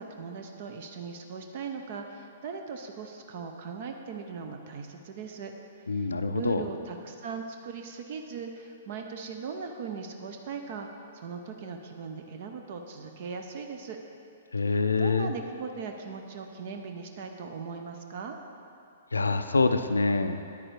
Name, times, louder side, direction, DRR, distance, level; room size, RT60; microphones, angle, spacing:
voice 1, 0.0-5.5 5.8-14.0 14.6-18.4, right 5 dB, 45° right, 4 dB, 0.6 m, -39 dB
voice 2, 5.9-6.6 14.5-15.3 19.1-20.4, left 3 dB, 75° left, 8 dB, 0.4 m, -25 dB
9.5 x 8.6 x 3.2 m, 2.6 s
figure-of-eight pair, 115°, 0 cm